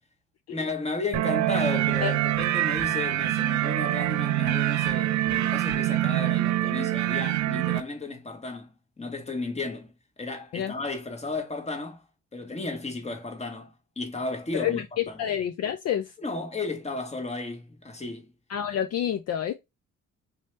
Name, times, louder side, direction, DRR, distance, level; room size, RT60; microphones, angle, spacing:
voice 1, 0.5-9.9 10.2-12.0 12.3-15.2 16.2-18.3, left 3 dB, 20° left, 1.1 m, -34 dB
sound 1, 1.1-7.8, right 14 dB, 70° right, 0.5 m, -25 dB
voice 2, 14.5-16.1 18.5-19.5, left 10 dB, 55° left, 0.5 m, -28 dB
3.2 x 2.8 x 3.1 m
cardioid pair, 90°, 30 cm